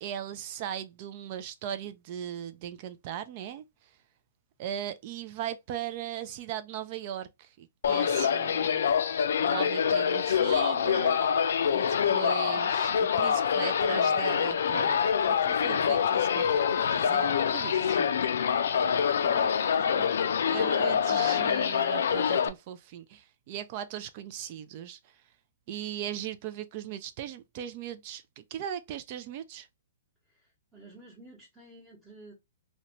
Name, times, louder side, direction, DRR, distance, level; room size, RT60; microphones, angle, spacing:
voice 1, 0.0-3.6 4.6-8.9 9.4-11.2 11.7-18.2 20.5-25.0 25.7-29.7, right 10 dB, 45° right, 0.3 m, -38 dB
sound 1, 7.8-22.5, left 7 dB, 70° left, 0.3 m, -25 dB
voice 2, 19.2-20.1 20.5-21.0 30.3-32.3, right 2 dB, 5° right, 1.0 m, -50 dB
2.5 x 2.1 x 2.8 m
hypercardioid pair, 130°, 0 cm